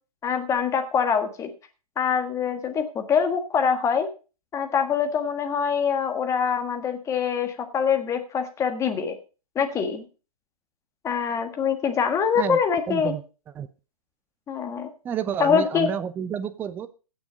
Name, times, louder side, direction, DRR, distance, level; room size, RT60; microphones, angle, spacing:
voice 1, 0.2-1.5 2.0-4.1 4.5-9.2 9.5-10.0 11.0-13.1 14.5-14.9 15.4-15.9, left 7 dB, 15° left, 6 dB, 1.6 m, -24 dB
voice 2, 12.9-13.2 13.6-13.7 15.0-16.9, right 8 dB, 10° right, 13 dB, 0.4 m, -29 dB
16.0 x 6.3 x 5.1 m, 0.34 s
hypercardioid pair, 130°, 20 cm